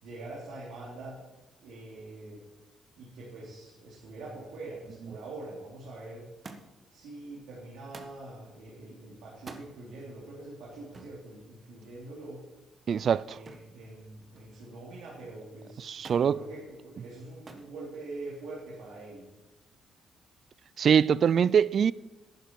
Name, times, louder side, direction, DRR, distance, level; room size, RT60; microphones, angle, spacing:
voice 1, 0.0-1.3 1.6-2.5 3.0-6.3 6.9-12.4 13.2-19.3, right 2 dB, 85° right, 3.2 m, -44 dB
Thump thud, 6.4-6.9 7.9-8.2 9.3-9.7 10.9-11.2 13.5-13.8 14.1-14.7 16.0-16.3 17.5-17.7 18.7-19.2 20.1-20.2, right 3 dB, 35° right, 1.3 m, -47 dB
voice 2, 12.9-13.4 15.8-16.4 20.8-21.9, right 7 dB, 55° right, 0.3 m, -23 dB
12.0 x 10.0 x 4.6 m
cardioid pair, 90°, 0 cm